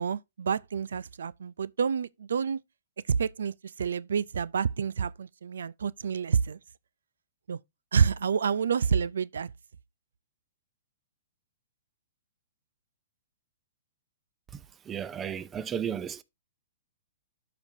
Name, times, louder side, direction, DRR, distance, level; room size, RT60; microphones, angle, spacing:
voice 1, 0.0-2.6 3.1-6.6 7.5-7.6 7.9-9.5, right 6 dB, 90° right, 0.3 m, -28 dB
voice 2, 14.9-16.2, right 8 dB, 15° right, 0.5 m, -33 dB
12.5 x 5.0 x 2.7 m
hypercardioid pair, 155°, 0 cm